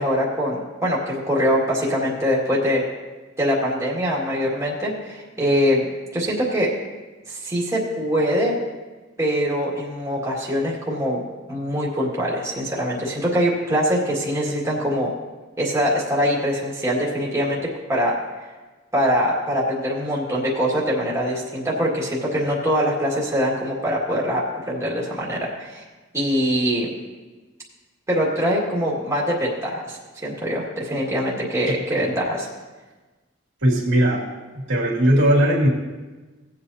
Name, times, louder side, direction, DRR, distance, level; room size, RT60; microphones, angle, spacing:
voice 1, 0.0-2.8 3.4-5.9 6.1-6.7 7.3-8.5 9.2-11.2 11.5-15.1 15.6-17.6 17.9-18.2 18.9-25.8 26.1-26.9 28.1-32.5, equal, 15° right, -5 dB, 2.0 m, -23 dB
voice 2, 31.7-32.1 33.6-34.2 34.5-35.7, right 1 dB, 80° right, -4 dB, 2.4 m, -19 dB
17.5 x 7.9 x 2.8 m, 1.2 s
head